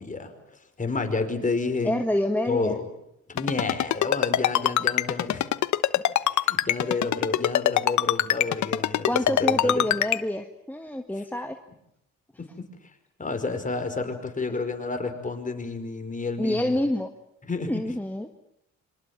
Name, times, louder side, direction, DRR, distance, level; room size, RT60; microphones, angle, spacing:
voice 1, 0.0-2.0 2.5-2.8 3.3-5.5 6.3-9.9 12.4-12.7 13.2-16.8 17.5-17.8, left 3 dB, 25° left, 6 dB, 5.2 m, -30 dB
voice 2, 1.8-2.8 9.1-11.6 16.4-17.1 17.7-18.3, left 1 dB, 5° left, 5 dB, 1.7 m, -27 dB
Ringtone, 3.4-10.2, left 12 dB, 70° left, 1.1 m, -22 dB
27.0 x 25.0 x 7.5 m, 0.78 s
cardioid pair, 90°, 30 cm